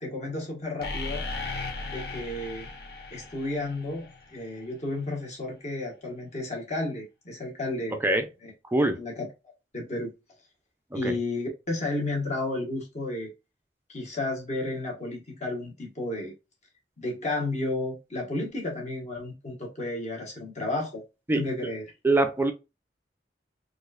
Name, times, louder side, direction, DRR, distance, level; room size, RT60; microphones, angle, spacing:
voice 1, 0.0-1.2 1.8-2.7 3.1-8.0 8.4-8.5 9.0-9.3 9.7-10.1 10.9-13.3 13.9-16.3 17.0-21.0 21.3-21.8, left 2 dB, 40° left, 1.3 m, -32 dB
sound 1, 0.8-4.7, left 3 dB, 60° left, 0.7 m, -37 dB
voice 2, 22.0-22.5, right 2 dB, 10° right, 0.4 m, -23 dB
4.1 x 2.5 x 2.4 m
head